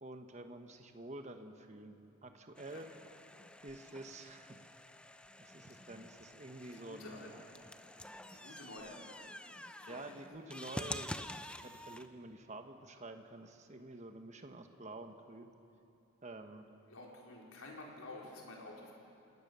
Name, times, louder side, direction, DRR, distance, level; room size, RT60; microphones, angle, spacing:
voice 1, 0.0-2.9 3.6-4.6 5.4-7.2 8.1-8.6 9.9-11.4 11.6-15.5 16.2-16.7, right 2 dB, 30° right, 6 dB, 1.2 m, -49 dB
sound 1, 2.5-12.1, left 1 dB, 5° left, 0.5 m, -48 dB
voice 2, 6.7-7.3 8.1-9.3 9.8-10.3 16.9-18.9, left 2 dB, 70° left, -2 dB, 4.3 m, -51 dB
28.5 x 18.0 x 6.9 m, 2.8 s
head